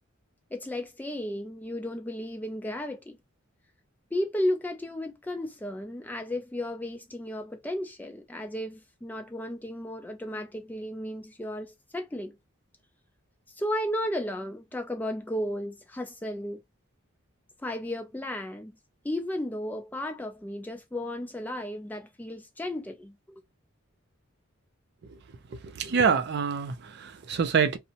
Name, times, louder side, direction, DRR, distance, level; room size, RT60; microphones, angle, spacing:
voice 1, 0.5-3.2 4.1-12.4 13.6-16.6 17.6-18.8 19.0-23.4, left 1 dB, 10° left, 0.3 m, -34 dB
voice 2, 25.5-27.8, right 6 dB, 55° right, 0.4 m, -26 dB
2.6 x 2.0 x 2.7 m
head